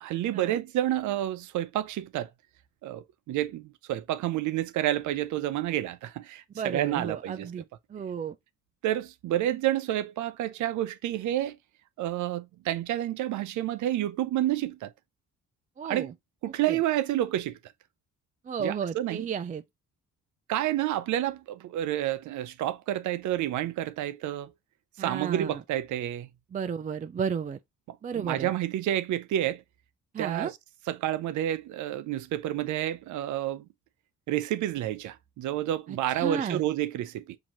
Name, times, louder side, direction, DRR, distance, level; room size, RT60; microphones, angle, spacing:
voice 1, 0.0-2.3 2.8-7.5 8.8-11.6 12.0-14.9 15.8-16.1 16.4-17.6 18.6-19.2 20.5-24.5 25.0-26.3 27.9-29.6 30.2-30.6 30.9-33.7 34.3-37.4, right 13 dB, 75° right, 0.6 m, -29 dB
voice 2, 6.5-7.6 7.9-8.4 15.8-16.1 16.7-16.8 18.5-19.6 25.0-25.6 26.5-27.6 28.0-28.5 30.1-30.5 35.9-36.6, right 6 dB, 25° right, 0.4 m, -33 dB
5.9 x 2.7 x 3.0 m
cardioid pair, 90°, 30 cm